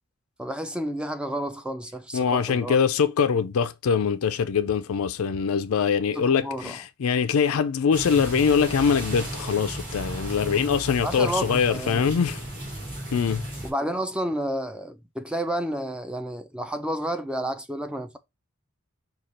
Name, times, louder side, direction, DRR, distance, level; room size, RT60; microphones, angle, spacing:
voice 1, 0.4-2.8 6.1-6.8 11.0-12.2 13.6-18.2, right 1 dB, 5° right, 0.4 m, -30 dB
voice 2, 2.1-12.4 13.1-13.4, left 6 dB, 75° left, 0.4 m, -23 dB
sound 1, 7.9-13.7, right 1 dB, 40° right, 2.7 m, -34 dB
5.0 x 2.4 x 4.2 m
head